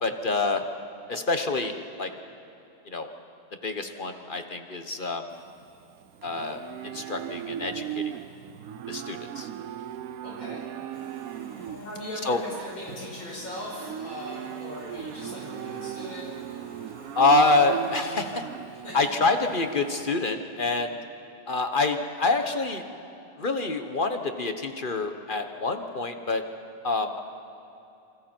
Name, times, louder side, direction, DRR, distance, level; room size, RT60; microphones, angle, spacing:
voice 1, 0.0-0.6 1.1-1.7 2.0-2.1 2.9-3.1 3.6-5.3 6.2-8.0 8.9-9.5 12.3-12.4 17.1-18.4 18.9-21.0 21.5-22.8 23.4-26.4 26.8-27.2, left 3 dB, 35° left, 6 dB, 0.9 m, -26 dB
Livestock farm animals working animals, 5.3-20.1, right 10 dB, 70° right, 0.8 m, -38 dB
voice 2, 10.2-10.6 11.7-16.3 18.8-19.1, left 1 dB, 75° left, -4 dB, 6.0 m, -39 dB
sound 1, 10.9-17.9, left 1 dB, 50° left, 4.3 m, -50 dB
28.0 x 27.0 x 4.5 m, 2.8 s
omnidirectional pair, 2.2 m